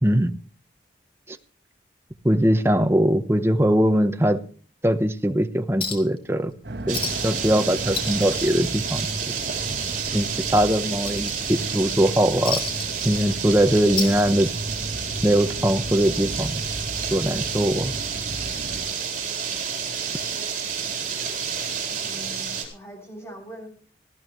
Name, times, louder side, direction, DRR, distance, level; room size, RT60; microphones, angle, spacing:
voice 1, 0.0-0.3 1.3-1.4 2.2-4.4 4.8-6.5 6.9-9.1 10.1-10.3 10.5-12.6 13.0-14.5 15.2-16.6 17.1-17.9, equal, 15° right, 9 dB, 0.9 m, -21 dB
Chink clink, 5.8-6.2 6.5-6.6 6.9-7.4 7.7-9.4 9.7-9.9 10.4-11.8 12.5-13.6 13.9-14.8 15.9-16.0, left 5 dB, 30° left, 2.8 m, -32 dB
sound 1, 6.6-18.8, right 1 dB, 65° right, 1.3 m, -35 dB
sound 2, 6.9-22.6, right 7 dB, 45° right, 4.0 m, -30 dB
voice 2, 22.0-23.7, equal, 15° left, 1 dB, 7.1 m, -43 dB
18.5 x 14.0 x 3.1 m, 0.41 s
head